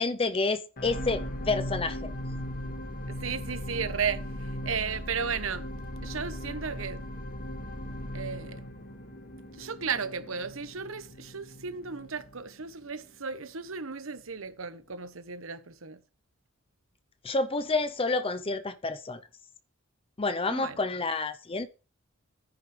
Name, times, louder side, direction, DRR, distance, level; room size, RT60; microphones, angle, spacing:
voice 1, 0.0-2.1 17.2-19.2 20.2-21.7, left 3 dB, 25° left, 0.7 m, -29 dB
sound 1, 0.8-13.1 13.7-13.8, equal, 45° left, 2.0 m, -38 dB
voice 2, 3.1-5.7 6.0-7.0 8.1-8.6 9.5-16.0 20.5-20.8, right 6 dB, 75° right, 1.1 m, -35 dB
14.0 x 10.0 x 3.3 m
head